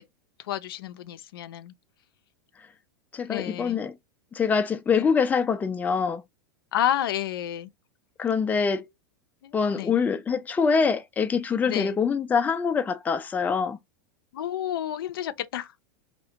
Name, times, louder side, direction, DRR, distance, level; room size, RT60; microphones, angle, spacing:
voice 1, 0.4-1.7 3.3-3.8 4.9-5.1 6.7-7.7 9.4-10.0 11.6-12.0 14.3-15.7, left 11 dB, 80° left, 0.4 m, -30 dB
voice 2, 3.1-3.9 4.3-6.2 8.2-8.9 9.5-13.8, left 5 dB, 15° left, 0.3 m, -24 dB
2.4 x 2.1 x 2.7 m
hypercardioid pair, 110°, 12 cm